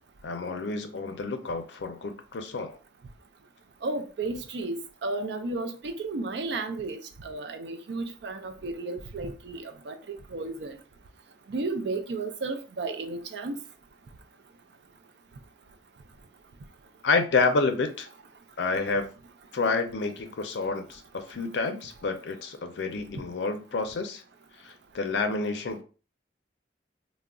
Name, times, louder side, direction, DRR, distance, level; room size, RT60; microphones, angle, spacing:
voice 1, 0.2-2.8 17.0-18.1 18.6-19.1 19.5-24.2 24.6-25.8, left 3 dB, 70° left, 0.4 m, -29 dB
voice 2, 3.8-10.0 10.3-10.7 11.5-13.6, right 3 dB, 70° right, 0.4 m, -33 dB
3.6 x 2.1 x 2.3 m
head